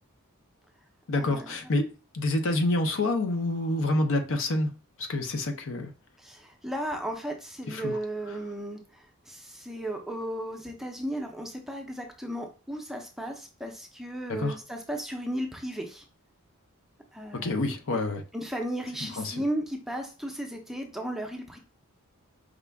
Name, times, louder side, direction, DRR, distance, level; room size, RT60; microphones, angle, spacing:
voice 1, 1.1-4.7 5.0-5.9 7.7-8.0 8.3-8.4 14.3-14.6 17.3-18.2 19.0-19.4, left 2 dB, 60° left, 0.7 m, -28 dB
voice 2, 6.2-8.8 9.3-16.0 17.1-17.6 18.3-21.6, right 1 dB, ahead, 0.6 m, -35 dB
5.0 x 2.3 x 3.4 m
head